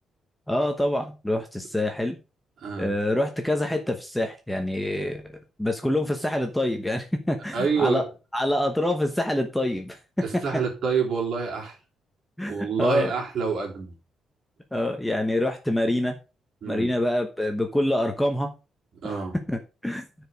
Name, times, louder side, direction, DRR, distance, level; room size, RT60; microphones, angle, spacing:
voice 1, 0.5-2.2 2.8-5.2 5.6-8.0 8.3-10.4 12.4-13.1 14.7-16.2 16.7-18.5 19.5-20.0, left 1 dB, 5° left, 5 dB, 0.9 m, -26 dB
voice 2, 2.6-2.9 7.5-8.0 10.2-11.8 12.5-13.9 16.6-16.9 19.0-19.4, right 5 dB, 50° right, 0 dB, 3.4 m, -27 dB
10.0 x 4.8 x 5.3 m, 0.31 s
cardioid pair, 180°, 0 cm